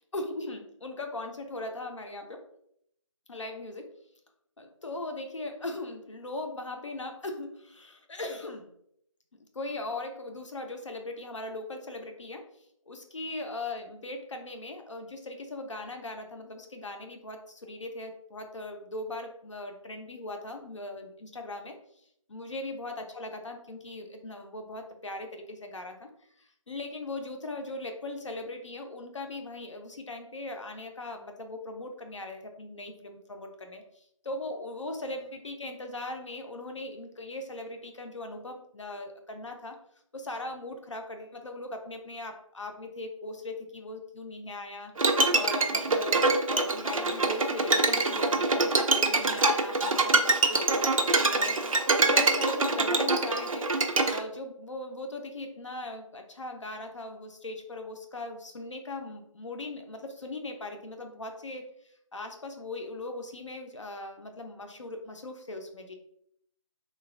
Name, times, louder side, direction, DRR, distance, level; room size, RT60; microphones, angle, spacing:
voice 1, 0.1-2.4 3.3-3.9 4.6-8.7 9.5-12.4 12.9-21.7 22.3-26.1 26.4-39.8 40.1-53.7 54.0-61.7 62.1-65.9, left 2 dB, 65° left, 5 dB, 0.5 m, -39 dB
Bowed string instrument, 45.0-54.2, right 3 dB, 80° right, 0.4 m, -24 dB
3.1 x 2.2 x 2.4 m, 0.72 s
figure-of-eight pair, 160°, 17 cm